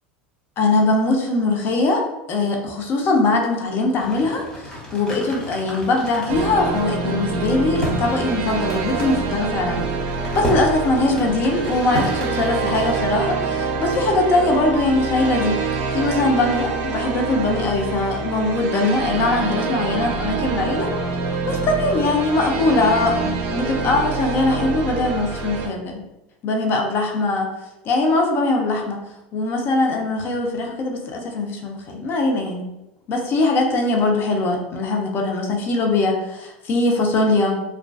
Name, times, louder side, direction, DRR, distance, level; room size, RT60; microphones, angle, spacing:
voice 1, 0.6-2.0 2.3-9.8 10.3-15.6 15.9-20.9 21.4-26.0 26.4-27.5 27.8-29.0 29.3-32.7 33.1-37.6, left 2 dB, 45° left, 2 dB, 0.5 m, -21 dB
sound 1, 4.0-13.0, left 1 dB, 15° left, 0.9 m, -32 dB
sound 2, 6.3-25.7, right 4 dB, 65° right, 0.5 m, -26 dB
2.4 x 2.2 x 2.3 m, 0.91 s
supercardioid pair, 105°, 5 cm